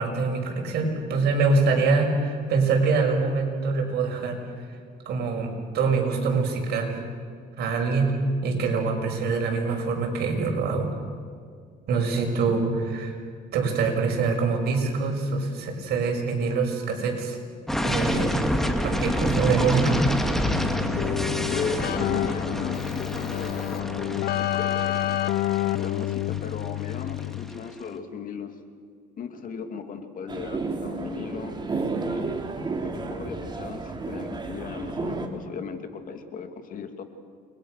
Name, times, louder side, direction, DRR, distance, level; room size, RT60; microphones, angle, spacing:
voice 1, 0.0-4.4 5.0-5.5 5.7-7.0 7.6-8.1 8.4-10.9 11.9-13.2 13.5-17.4 17.8-18.4 18.8-20.0, right 4 dB, 70° right, 1 dB, 6.6 m, -24 dB
sound 1, 17.7-27.5, equal, ahead, 2.3 m, -28 dB
Keyboard (musical), 20.4-27.7, left 14 dB, 70° left, 0.8 m, -29 dB
voice 2, 21.5-25.2 25.8-28.5 29.2-32.4 32.8-37.0, left 6 dB, 55° left, 7 dB, 2.6 m, -37 dB
sound 2, 30.3-35.3, right 3 dB, 25° right, 3.0 m, -31 dB
29.5 x 22.5 x 6.7 m, 2.1 s
cardioid pair, 110°, 17 cm